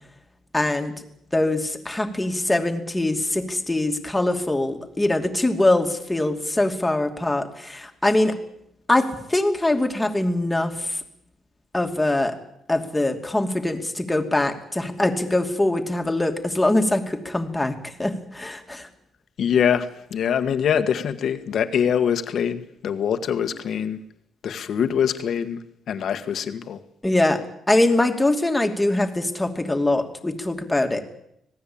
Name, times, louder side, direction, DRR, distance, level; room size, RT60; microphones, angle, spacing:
voice 1, 0.5-0.9 1.3-8.4 8.9-11.0 11.7-12.4 12.7-18.9 27.0-27.4 27.7-31.0, left 2 dB, 10° left, 2.8 m, -23 dB
voice 2, 19.4-24.0 24.4-26.8, left 8 dB, 55° left, 1.8 m, -24 dB
26.0 x 18.0 x 8.8 m
cardioid pair, 130°, 0 cm